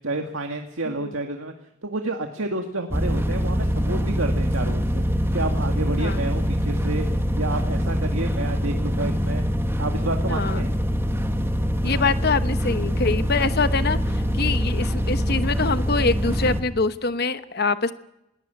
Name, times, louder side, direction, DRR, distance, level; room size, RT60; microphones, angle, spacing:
voice 1, 0.0-1.5 1.8-5.0 5.3-7.1 7.4-9.5 9.8-10.7, right 2 dB, 85° right, 4 dB, 2.0 m, -30 dB
sound 1, 2.9-16.6, equal, 10° right, 1.6 m, -24 dB
voice 2, 10.3-10.7 11.8-17.9, left 4 dB, 50° left, 11 dB, 1.1 m, -25 dB
21.5 x 18.0 x 8.2 m, 0.83 s
head